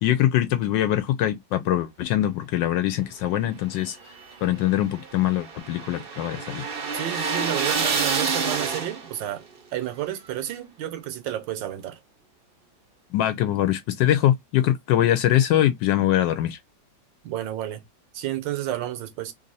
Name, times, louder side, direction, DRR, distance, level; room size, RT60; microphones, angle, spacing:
voice 1, 0.0-4.0 4.4-6.7 13.1-16.6, left 12 dB, 80° left, 1.2 m, -23 dB
sound 1, 3.8-9.3, right 5 dB, 55° right, 0.6 m, -28 dB
voice 2, 6.9-9.4 9.7-12.0 17.2-17.8 18.1-19.3, right 12 dB, 80° right, 1.4 m, -31 dB
3.3 x 2.7 x 3.9 m
omnidirectional pair, 2.0 m